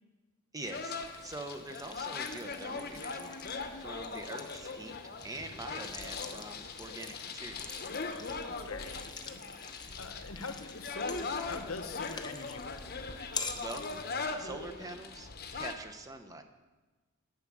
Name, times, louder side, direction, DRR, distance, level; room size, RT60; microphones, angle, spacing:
voice 1, 0.5-5.0 5.2-7.8 13.5-13.8 14.4-16.4, right 2 dB, 15° right, 7 dB, 0.8 m, -44 dB
sound 1, 0.6-15.7, left 4 dB, 45° left, 0.9 m, -40 dB
sound 2, 0.7-14.2, left 5 dB, 20° left, 0.7 m, -47 dB
voice 2, 8.1-9.4 10.0-12.9, left 4 dB, 75° left, 8 dB, 1.0 m, -44 dB
10.5 x 6.1 x 8.6 m, 1.3 s
head